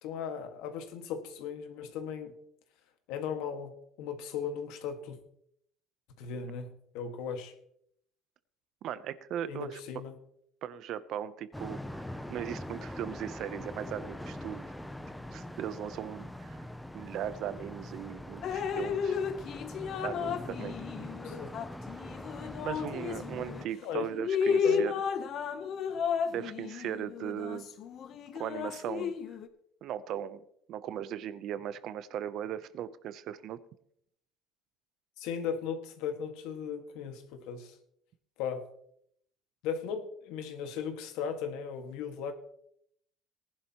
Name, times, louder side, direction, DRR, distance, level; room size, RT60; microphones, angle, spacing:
voice 1, 0.0-2.4 3.1-5.2 6.2-6.7 6.9-7.5 9.5-10.2 21.2-21.5 23.8-24.1 24.6-24.8 35.2-37.8 38.4-38.7 39.6-42.3, left 7 dB, 80° left, 7 dB, 1.8 m, -37 dB
voice 2, 8.8-9.8 10.6-14.7 15.3-16.6 16.9-19.2 20.0-21.1 22.6-24.9 26.3-27.7 28.3-29.1 29.8-33.6, right 10 dB, 55° right, 15 dB, 0.7 m, -38 dB
sound 1, 11.5-23.7, left 1 dB, 5° left, 0.6 m, -43 dB
Drip, 18.4-23.7 24.1-29.5, left 6 dB, 45° left, 0.9 m, -33 dB
18.5 x 11.0 x 3.0 m, 0.71 s
cardioid pair, 145°, 0 cm